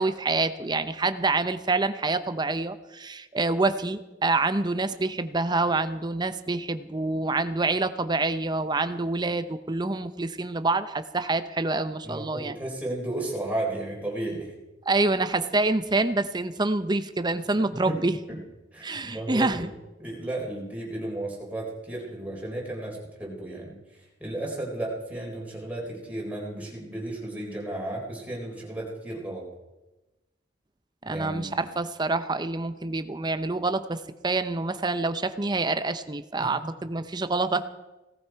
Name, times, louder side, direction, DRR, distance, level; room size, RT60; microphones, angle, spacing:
voice 1, 0.0-12.6 14.9-18.2 18.8-19.7 31.1-37.6, right 3 dB, 25° right, 11 dB, 0.7 m, -27 dB
voice 2, 12.0-14.5 17.7-18.0 18.3-18.4 18.7-19.7 20.0-23.8 24.2-29.4 31.0-31.6 36.4-36.7, right 1 dB, 10° right, -3 dB, 3.9 m, -34 dB
18.0 x 14.0 x 4.6 m, 1.1 s
head